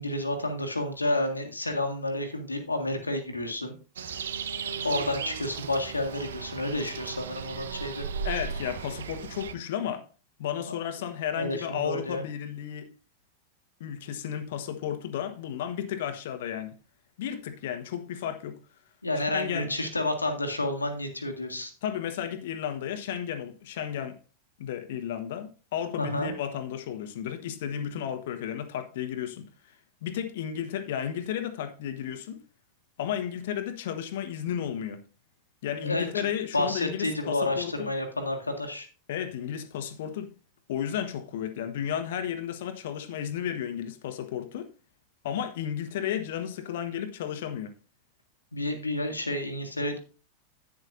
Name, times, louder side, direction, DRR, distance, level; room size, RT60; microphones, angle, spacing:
voice 1, 0.0-3.7 4.8-8.0 10.7-10.8 11.3-12.2 19.0-21.7 26.0-26.3 35.8-36.3 36.5-38.9 48.5-50.0, left 1 dB, 80° left, 1.7 m, -30 dB
sound 1, 4.0-9.5, right 6 dB, 65° right, 0.8 m, -36 dB
voice 2, 8.2-10.1 10.4-12.9 13.8-16.8 17.2-18.6 19.3-19.7 21.8-24.2 24.6-29.5 30.0-32.4 33.0-35.0 35.6-37.9 39.1-40.3 40.7-44.7 45.2-47.7, left 9 dB, 55° left, 1.2 m, -33 dB
11.0 x 9.6 x 2.6 m
figure-of-eight pair, 90°, 0 cm